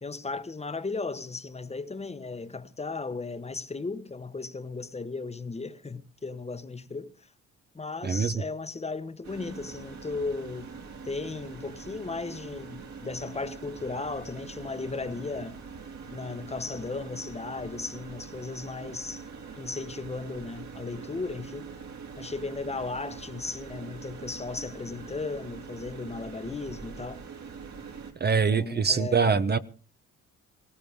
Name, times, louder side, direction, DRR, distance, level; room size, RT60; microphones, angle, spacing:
voice 1, 0.0-7.1 7.7-10.7 11.0-15.6 16.1-19.2 19.6-21.7 22.2-27.2 28.5-29.5, left 3 dB, 20° left, 1.2 m, -36 dB
voice 2, 8.0-8.3 28.2-29.6, right 5 dB, 35° right, 0.8 m, -24 dB
sound 1, 9.2-28.1, right 5 dB, 65° right, 3.7 m, -43 dB
19.0 x 17.0 x 3.6 m
cardioid pair, 90°, 30 cm